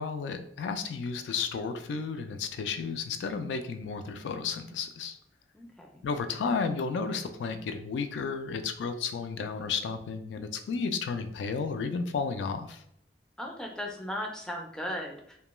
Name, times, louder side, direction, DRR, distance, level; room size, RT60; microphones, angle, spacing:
voice 1, 0.0-5.2 6.0-12.8, left 5 dB, 85° left, 9 dB, 0.3 m, -33 dB
voice 2, 5.5-6.0 13.4-15.4, equal, 5° left, 1 dB, 0.3 m, -37 dB
2.2 x 2.2 x 3.0 m, 0.71 s
head